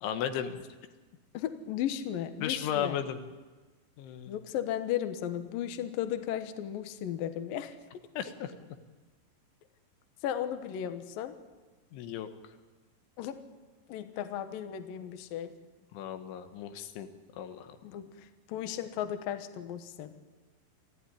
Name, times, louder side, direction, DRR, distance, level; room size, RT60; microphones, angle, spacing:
voice 1, 0.0-0.6 2.4-3.2 4.0-4.4 8.2-8.5 11.9-12.3 15.9-17.1 17.3-17.8, left 9 dB, 80° left, 8 dB, 3.7 m, -35 dB
voice 2, 1.3-3.0 4.3-7.8 10.2-11.3 13.2-13.4 13.9-15.5 17.8-20.1, left 10 dB, 65° left, 9 dB, 2.5 m, -35 dB
27.0 x 14.5 x 10.0 m, 1.3 s
omnidirectional pair, 5.4 m